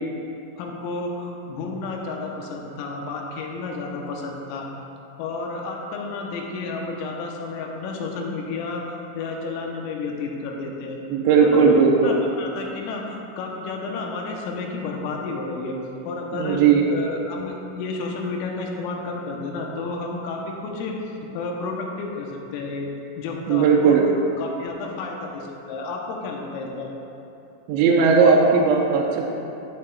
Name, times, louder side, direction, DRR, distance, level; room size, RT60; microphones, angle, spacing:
voice 1, 0.6-4.7 5.2-11.0 11.4-15.8 16.1-16.6 16.9-21.0 21.3-22.9 23.2-24.0 24.4-26.9, left 3 dB, 85° left, 0 dB, 3.4 m, -31 dB
voice 2, 11.1-12.2 16.3-16.8 23.5-24.0 27.7-29.2, right 5 dB, 85° right, -1 dB, 2.7 m, -17 dB
11.0 x 10.5 x 2.3 m, 2.8 s
omnidirectional pair, 5.8 m